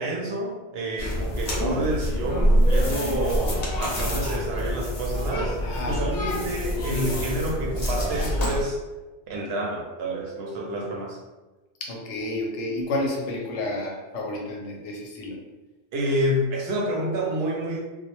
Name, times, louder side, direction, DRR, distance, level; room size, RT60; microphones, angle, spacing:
voice 1, 0.0-5.6 5.9-8.8 9.3-11.2 15.9-17.8, right 1 dB, 70° right, -1 dB, 0.7 m, -28 dB
sound 1, 1.0-8.6, equal, 45° left, 0.6 m, -25 dB
voice 2, 5.6-6.4 6.7-7.1 11.8-15.4, left 2 dB, 90° left, 0 dB, 0.9 m, -31 dB
2.2 x 2.0 x 2.9 m, 1.2 s
omnidirectional pair, 1.2 m